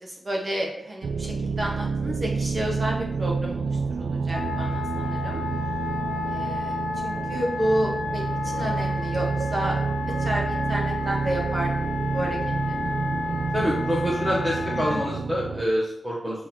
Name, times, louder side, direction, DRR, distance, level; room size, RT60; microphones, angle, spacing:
voice 1, 0.0-3.6 3.9-5.4 6.3-6.8 7.0-9.8 10.2-11.7 12.1-12.4 12.7-12.9 14.9-15.0, right 1 dB, 35° right, -1 dB, 1.6 m, -30 dB
sound 1, 1.0-15.7, right 5 dB, 80° right, 0.4 m, -29 dB
Wind instrument woodwind instrument, 4.3-15.1, left 5 dB, 55° left, 0.9 m, -32 dB
voice 2, 13.5-16.5, equal, 15° right, -5 dB, 1.2 m, -26 dB
7.4 x 3.7 x 4.4 m, 0.73 s
wide cardioid pair, 160°, 0 cm